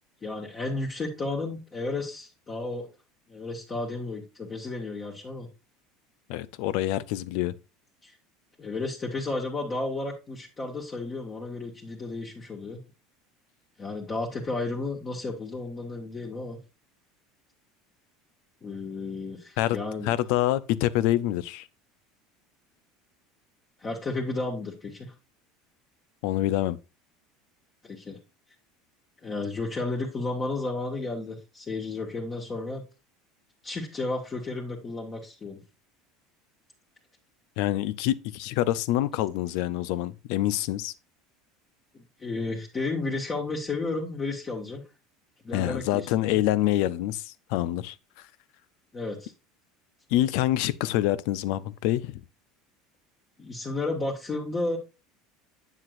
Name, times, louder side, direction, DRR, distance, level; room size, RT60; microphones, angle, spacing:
voice 1, 0.2-2.9 3.3-5.5 8.0-8.2 8.6-12.8 13.8-16.6 18.6-20.1 23.8-25.1 27.8-28.2 29.2-32.8 33.6-35.6 41.9-44.8 45.4-46.4 48.9-49.3 53.4-54.8, left 3 dB, 30° left, 1.8 m, -33 dB
voice 2, 6.3-7.5 19.6-19.8 20.0-21.7 26.2-26.8 37.6-40.9 45.5-47.9 50.1-52.2, left 14 dB, 70° left, 0.5 m, -26 dB
7.8 x 7.3 x 2.5 m
supercardioid pair, 100°, 0 cm